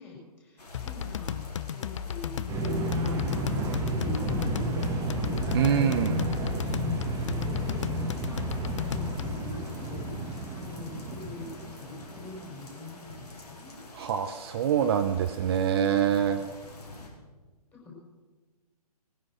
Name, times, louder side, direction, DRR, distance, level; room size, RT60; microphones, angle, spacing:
voice 1, 0.0-13.8 15.9-16.7 17.0-17.1 17.7-18.0, left 2 dB, 10° left, -2 dB, 5.2 m, -45 dB
sound 1, 0.6-17.1, left 2 dB, 75° left, 4.5 m, -48 dB
sound 2, 0.7-9.5, left 8 dB, 50° left, 0.6 m, -35 dB
sound 3, 2.5-12.5, right 1 dB, 15° right, 1.5 m, -31 dB
voice 2, 5.5-6.2 13.9-16.4, right 8 dB, 40° right, 7 dB, 0.8 m, -25 dB
19.5 x 9.7 x 6.3 m, 1.3 s
figure-of-eight pair, 135°, 20 cm